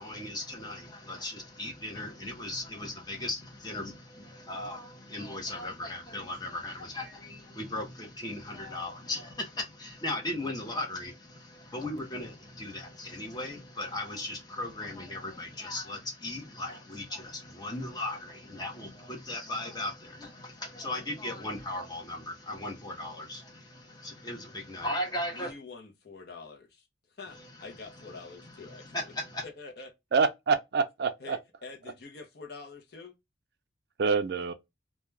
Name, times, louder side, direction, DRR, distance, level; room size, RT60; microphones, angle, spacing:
voice 1, 0.0-25.5 27.3-28.0 28.4-29.4, left 1 dB, 20° left, 0.7 m, -37 dB
voice 2, 25.3-29.1 29.4-29.9 31.2-33.1, left 4 dB, 55° left, 0.6 m, -46 dB
voice 3, 30.1-31.4 34.0-34.5, right 5 dB, 55° right, 0.4 m, -26 dB
2.3 x 2.2 x 3.1 m
head